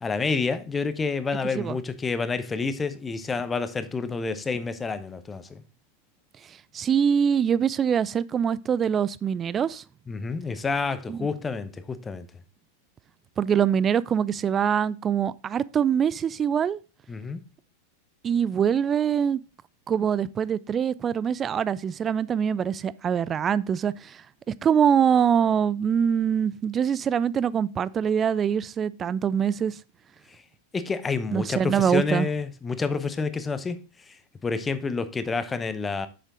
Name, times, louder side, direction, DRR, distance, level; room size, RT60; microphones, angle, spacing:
voice 1, 0.0-5.6 10.1-12.3 17.1-17.4 30.7-33.8 34.4-36.1, left 4 dB, 15° left, 0.8 m, -28 dB
voice 2, 6.7-9.8 11.1-11.2 13.4-16.8 18.2-19.4 19.9-24.2 24.5-29.7 31.3-32.3, right 8 dB, 25° right, 0.4 m, -24 dB
7.7 x 6.6 x 3.6 m
figure-of-eight pair, 90°, 0 cm